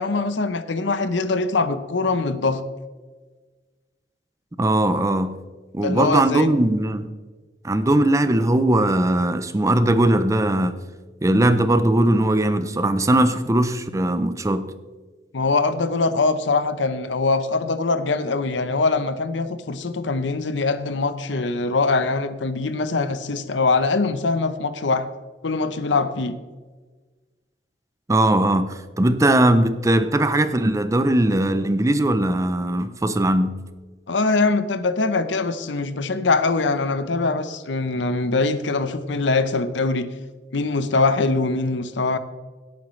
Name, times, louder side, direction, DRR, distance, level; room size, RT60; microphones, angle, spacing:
voice 1, 0.0-2.6 5.8-6.5 15.3-25.1 25.4-26.4 34.1-40.1 40.5-42.2, left 3 dB, 80° left, 0.8 m, -22 dB
voice 2, 4.6-5.4 5.7-7.1 7.6-10.8 11.2-14.7 28.1-33.6, right 1 dB, 15° right, 0.5 m, -19 dB
17.0 x 8.6 x 3.2 m
head